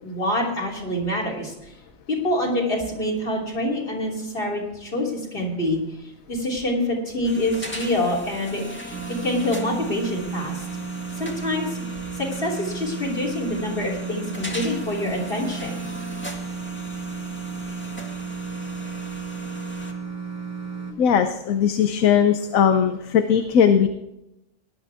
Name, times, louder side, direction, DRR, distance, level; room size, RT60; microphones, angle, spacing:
voice 1, 0.0-1.5 2.1-5.8 6.3-10.6 11.2-11.8 12.2-15.8, left 1 dB, 45° left, -2 dB, 3.5 m, -26 dB
sound 1, 7.2-19.9, left 1 dB, 10° left, 1.8 m, -39 dB
sound 2, 8.9-20.9, right 5 dB, 60° right, 1.8 m, -33 dB
voice 2, 21.0-23.9, left 8 dB, 85° left, 8 dB, 1.2 m, -19 dB
18.0 x 11.5 x 3.5 m, 0.89 s
omnidirectional pair, 1.4 m